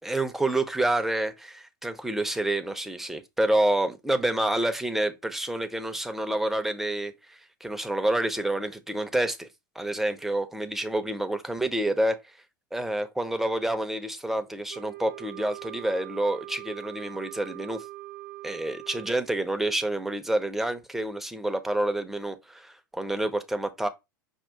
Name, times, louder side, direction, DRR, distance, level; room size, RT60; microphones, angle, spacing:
voice 1, 0.0-9.5 9.8-12.2 12.7-17.8 18.4-23.9, right 1 dB, 5° right, 0.6 m, -28 dB
Wind instrument woodwind instrument, 14.7-19.2, right 17 dB, 60° right, 0.7 m, -42 dB
5.4 x 2.5 x 3.6 m
figure-of-eight pair, 85°, 11 cm